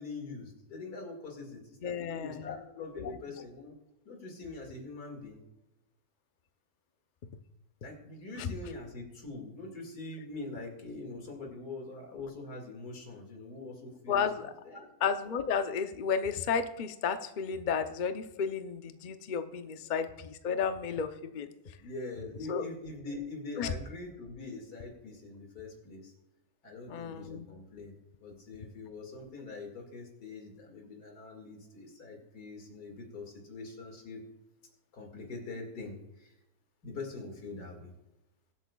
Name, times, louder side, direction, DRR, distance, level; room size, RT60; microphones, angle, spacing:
voice 1, 0.0-3.7 4.1-5.4 7.8-14.9 19.7-19.8 21.8-26.1 26.6-34.2 34.9-36.3 36.8-37.9, left 3 dB, 70° left, 2 dB, 2.6 m, -44 dB
voice 2, 1.8-2.6 3.0-3.1 8.4-8.5 14.1-14.5 15.0-21.5 22.5-22.6 23.6-23.7 26.9-27.4, left 6 dB, 55° left, 9 dB, 0.5 m, -32 dB
22.0 x 8.3 x 2.3 m, 0.92 s
omnidirectional pair, 1.7 m